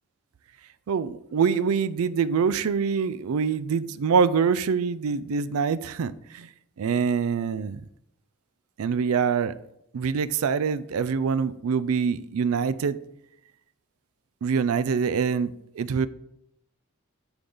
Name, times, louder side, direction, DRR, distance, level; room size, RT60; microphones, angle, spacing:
voice 1, 0.9-6.5 6.8-7.8 8.8-9.5 9.9-13.0 14.4-16.1, right 6 dB, 85° right, 0.4 m, -25 dB
9.8 x 4.0 x 3.8 m
head